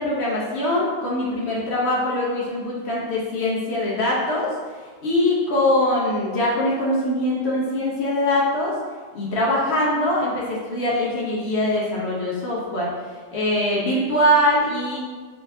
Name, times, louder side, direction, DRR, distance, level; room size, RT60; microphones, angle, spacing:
voice 1, 0.0-4.5 5.0-8.7 9.1-12.9 13.3-15.0, left 1 dB, 45° left, -5 dB, 1.0 m, -22 dB
4.3 x 3.8 x 2.7 m, 1.5 s
omnidirectional pair, 1.9 m